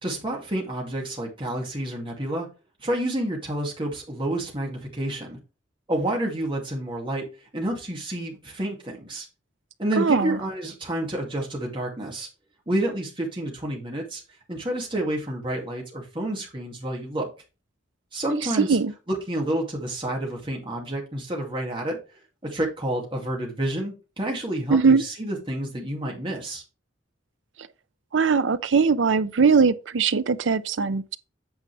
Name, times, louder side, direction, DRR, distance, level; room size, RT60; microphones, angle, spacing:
voice 1, 0.0-2.5 2.8-5.4 5.9-7.3 7.5-9.3 9.8-12.3 12.7-14.2 14.5-17.3 18.1-18.8 19.1-22.0 22.4-26.6, right 1 dB, 25° right, 2.4 m, -29 dB
voice 2, 10.0-10.3 18.6-18.9 24.7-25.0 28.1-31.2, right 5 dB, 75° right, 0.5 m, -20 dB
8.8 x 5.8 x 3.4 m
head